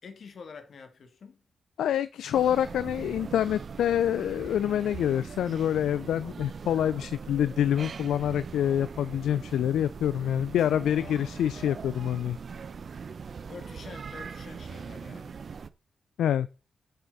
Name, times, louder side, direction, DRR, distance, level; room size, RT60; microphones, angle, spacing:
voice 1, 0.0-1.4 6.2-6.6 11.0-11.4 13.5-15.4, left 5 dB, 65° left, 1.9 m, -47 dB
voice 2, 1.8-12.4 16.2-16.5, left 10 dB, 80° left, 0.4 m, -26 dB
sound 1, 2.3-15.7, right 6 dB, 60° right, 0.7 m, -41 dB
9.1 x 8.0 x 4.1 m
supercardioid pair, 45°, 0 cm